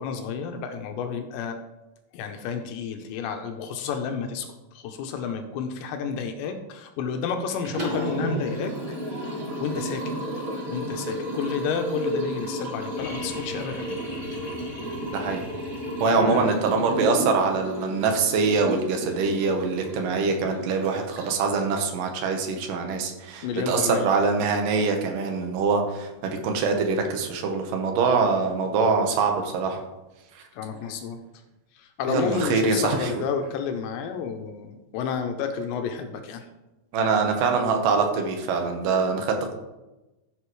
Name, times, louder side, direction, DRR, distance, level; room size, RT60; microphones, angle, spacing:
voice 1, 0.0-1.6 2.1-4.5 4.7-8.7 9.1-9.2 9.6-10.1 10.7-13.9 16.1-16.6 23.4-24.1 30.5-31.2 31.8-36.5, left 6 dB, 80° left, 5 dB, 2.9 m, -31 dB
Liquid, 7.5-21.6, equal, 45° right, 1.0 m, -32 dB
sound 1, 13.0-16.7 18.4-18.5, left 2 dB, 40° left, 2.3 m, -42 dB
voice 2, 15.1-15.5 16.0-29.8 32.1-33.2 36.9-39.5, right 4 dB, 70° right, 3 dB, 2.1 m, -24 dB
14.5 x 7.6 x 3.2 m, 1.0 s
omnidirectional pair, 5.3 m